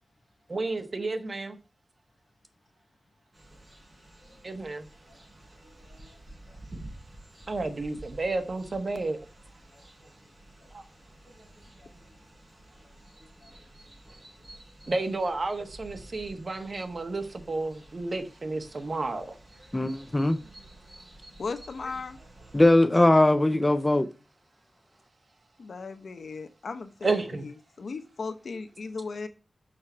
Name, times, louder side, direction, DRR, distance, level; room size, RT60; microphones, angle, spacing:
voice 1, 0.5-1.6 4.4-4.8 7.5-9.2 10.7-10.8 14.9-19.4 27.0-27.5, right 3 dB, 50° right, 1.2 m, -31 dB
sound 1, 3.3-22.7, right 1 dB, 35° right, 4.8 m, -51 dB
voice 2, 19.7-20.4 22.5-24.1, left 1 dB, 20° left, 0.6 m, -20 dB
voice 3, 21.4-22.2 25.6-29.3, left 4 dB, 85° left, 0.8 m, -37 dB
6.5 x 5.9 x 4.2 m
wide cardioid pair, 85°, 0 cm